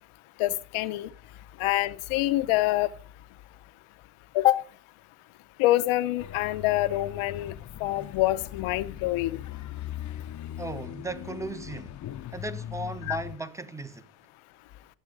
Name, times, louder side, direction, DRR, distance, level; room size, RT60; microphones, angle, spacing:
voice 1, 0.4-1.1 1.6-2.9 4.3-4.6 5.6-7.5 7.8-9.4 13.1-13.2, left 16 dB, 80° left, 0.9 m, -25 dB
sound 1, 6.2-13.4, left 12 dB, 40° left, 0.6 m, -40 dB
voice 2, 10.6-12.0 12.3-14.1, right 2 dB, 5° right, 0.7 m, -36 dB
11.0 x 7.3 x 4.8 m
cardioid pair, 135°, 49 cm